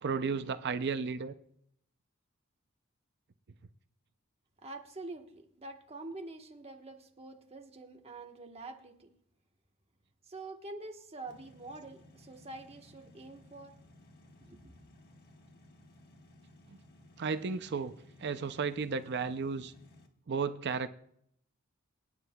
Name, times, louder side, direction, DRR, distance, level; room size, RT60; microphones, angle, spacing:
voice 1, 0.0-1.3 17.2-17.9 18.2-19.7 20.3-20.9, right 5 dB, 50° right, 0.5 m, -33 dB
voice 2, 4.6-9.1 10.3-13.8 14.4-14.7, right 2 dB, 30° right, 1.2 m, -46 dB
sound 1, 11.3-20.1, left 1 dB, 50° left, 1.4 m, -59 dB
27.0 x 9.6 x 2.3 m
head